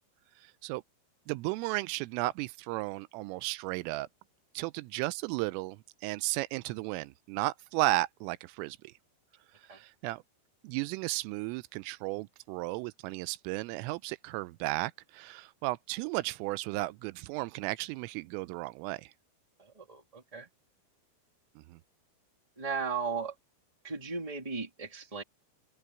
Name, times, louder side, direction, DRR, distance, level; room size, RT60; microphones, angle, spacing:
voice 1, 1.3-4.1 4.6-8.9 9.7-10.2 10.6-19.1 21.7-21.8, right 20 dB, 85° right, 3.1 m, -34 dB
voice 2, 19.6-20.5 22.5-23.3 23.8-25.2, right 5 dB, 15° right, 1.4 m, -36 dB
open air
omnidirectional pair, 6.0 m